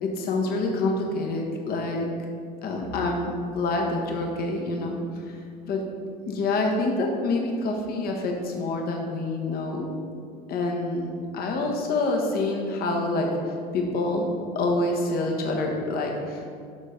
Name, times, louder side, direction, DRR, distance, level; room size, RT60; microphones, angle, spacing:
voice 1, 0.0-2.1 2.6-5.4 5.6-5.8 6.3-9.9 10.5-14.3 14.5-16.5, left 2 dB, 45° left, 1 dB, 1.5 m, -27 dB
11.5 x 4.0 x 3.9 m, 2.3 s
supercardioid pair, 100°, 21 cm